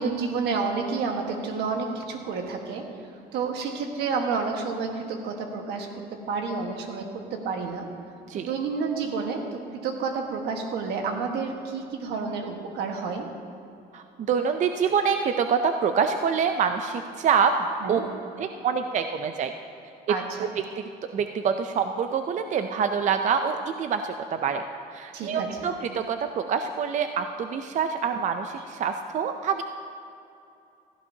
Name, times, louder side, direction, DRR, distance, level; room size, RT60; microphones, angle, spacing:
voice 1, 0.0-2.8 3.3-7.9 8.3-13.3 17.8-18.1 20.1-20.5 25.1-25.7, right 4 dB, 80° right, 3 dB, 1.5 m, -30 dB
voice 2, 13.9-17.5 17.9-18.0 18.4-19.5 20.4-20.6 21.1-24.6 24.9-29.6, right 6 dB, 45° right, 7 dB, 0.5 m, -26 dB
16.0 x 14.5 x 2.8 m, 2.7 s
cardioid pair, 110°, 17 cm